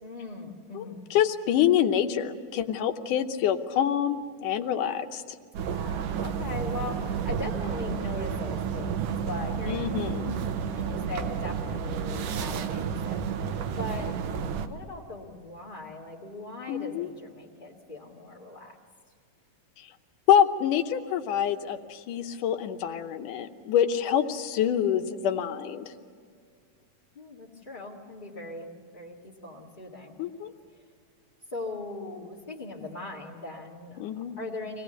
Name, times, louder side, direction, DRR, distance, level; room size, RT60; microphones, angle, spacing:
voice 1, 0.0-1.0 5.7-9.9 10.7-14.2 14.6-18.8 27.1-30.2 30.7-30.8 31.5-34.8, left 2 dB, 20° left, -6 dB, 1.2 m, -40 dB
voice 2, 1.1-5.2 9.7-10.3 16.7-17.1 20.3-25.9 30.2-30.5 34.0-34.4, left 9 dB, 70° left, 8 dB, 2.3 m, -26 dB
sound 1, 5.5-14.7, right 7 dB, 75° right, 2.5 m, -31 dB
25.0 x 18.5 x 7.9 m, 2.1 s
omnidirectional pair, 4.0 m